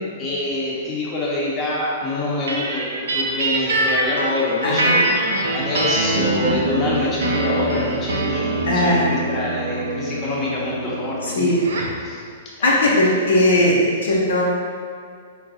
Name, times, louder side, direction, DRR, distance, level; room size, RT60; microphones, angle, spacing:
voice 1, 0.2-5.0 5.5-11.5 12.0-12.2 12.6-12.8, left 2 dB, 25° left, -6 dB, 0.8 m, -26 dB
sound 1, 2.5-12.0, right 1 dB, 65° right, 0.5 m, -23 dB
voice 2, 4.6-5.0 8.6-9.2 11.2-11.6 12.6-14.4, left 1 dB, 70° left, -5 dB, 0.6 m, -18 dB
4.5 x 2.2 x 2.7 m, 2.1 s
figure-of-eight pair, 110°, 0 cm